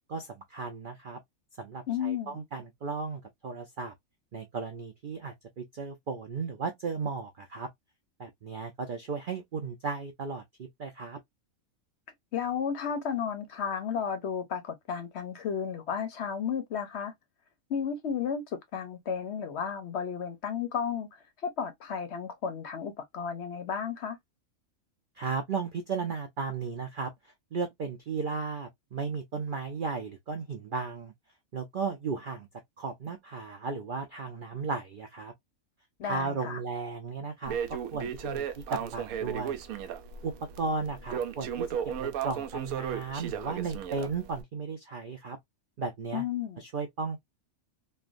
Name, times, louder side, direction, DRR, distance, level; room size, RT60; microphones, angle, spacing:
voice 1, 0.1-1.2 1.6-3.9 4.3-7.7 8.2-11.2 25.2-27.1 27.5-31.1 31.5-32.5 32.8-35.3 36.0-37.5 37.9-39.6 40.2-45.4 45.8-46.2 46.6-47.2, right 4 dB, 65° right, 0.5 m, -35 dB
voice 2, 1.9-2.4 12.3-17.1 17.7-18.4 18.7-24.2 36.0-36.6 46.1-46.6, left 7 dB, 60° left, 0.8 m, -33 dB
Crackle, 37.5-44.4, right 8 dB, 80° right, 1.0 m, -35 dB
3.2 x 2.2 x 2.4 m
omnidirectional pair, 1.5 m